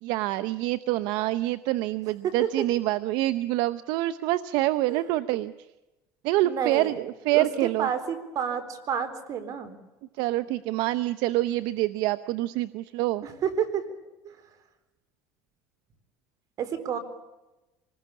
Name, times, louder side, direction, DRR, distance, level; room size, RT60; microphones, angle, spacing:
voice 1, 0.0-5.5 6.2-7.9 10.2-13.3, right 16 dB, 75° right, 13 dB, 0.8 m, -26 dB
voice 2, 6.4-7.0 7.3-9.8 13.2-13.9 14.2-14.4 16.6-17.0, right 8 dB, 50° right, 10 dB, 3.9 m, -30 dB
26.5 x 20.0 x 8.5 m, 1.0 s
supercardioid pair, 110°, 7 cm